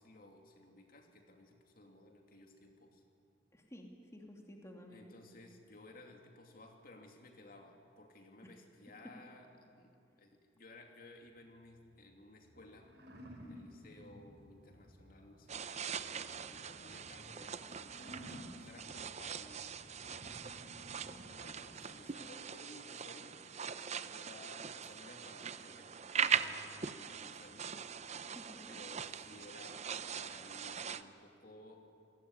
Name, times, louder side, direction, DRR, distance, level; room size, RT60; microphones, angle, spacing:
voice 1, 0.0-3.0 4.9-12.9 13.4-19.6 20.4-23.3 24.0-25.9 26.3-27.8 28.7-29.8 30.2-31.8, left 2 dB, 50° left, 2 dB, 2.8 m, -57 dB
voice 2, 3.5-5.1 8.4-8.5 28.3-28.8, left 1 dB, 15° left, 1 dB, 2.6 m, -53 dB
sound 1, 11.3-21.8, equal, 60° right, 5.8 m, -55 dB
sound 2, 15.5-31.0, right 7 dB, 35° right, 0.7 m, -41 dB
27.5 x 20.0 x 9.8 m, 2.5 s
head